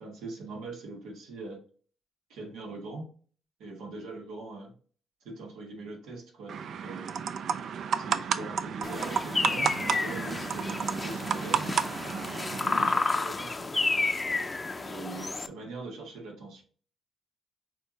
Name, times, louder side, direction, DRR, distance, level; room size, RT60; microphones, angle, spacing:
voice 1, 0.0-1.6 2.3-3.1 3.6-4.7 5.2-7.2 8.0-11.7 12.5-13.7 14.7-16.6, right 3 dB, 85° right, 1.6 m, -41 dB
sound 1, 6.5-13.0, right 7 dB, 65° right, 0.4 m, -32 dB
sound 2, 8.8-15.5, left 3 dB, 25° left, 0.5 m, -31 dB
6.5 x 2.6 x 3.0 m
cardioid pair, 90°, 0 cm